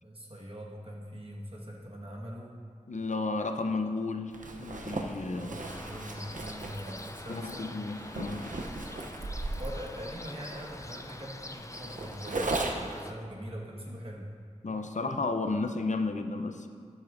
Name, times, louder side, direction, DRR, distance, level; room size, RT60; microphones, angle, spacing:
voice 1, 0.0-2.6 5.3-7.8 9.6-14.3, equal, 45° right, -3 dB, 1.5 m, -42 dB
voice 2, 2.9-4.3 4.6-5.5 7.3-8.5 14.6-16.7, left 3 dB, 65° left, 6 dB, 0.6 m, -32 dB
Zipper (clothing), 4.3-13.0, right 2 dB, 85° right, 0.7 m, -37 dB
sound 1, 5.6-13.1, left 2 dB, 25° left, 0.5 m, -45 dB
12.5 x 8.4 x 2.6 m, 2.2 s
wide cardioid pair, 40°, 13 cm